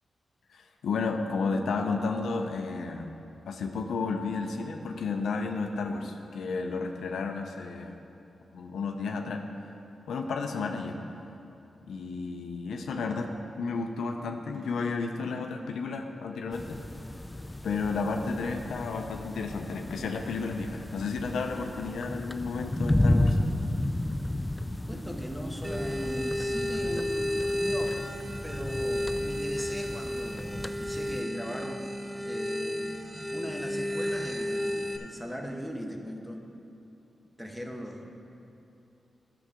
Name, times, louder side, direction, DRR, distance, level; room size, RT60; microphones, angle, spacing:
voice 1, 0.5-3.1 3.5-7.9 8.5-9.4 10.1-11.0 11.9-13.3 13.6-16.8 17.6-23.4, left 4 dB, 90° left, 4 dB, 0.6 m, -32 dB
sound 1, 16.5-31.2, left 1 dB, 15° left, 0.3 m, -33 dB
voice 2, 24.9-28.0 28.4-31.8 32.2-32.9 33.3-36.4 37.4-38.1, equal, 5° right, 1 dB, 1.1 m, -39 dB
sound 2, 25.6-35.0, left 1 dB, 25° right, 0.7 m, -32 dB
12.0 x 6.9 x 3.7 m, 2.8 s
cardioid pair, 60°, 0 cm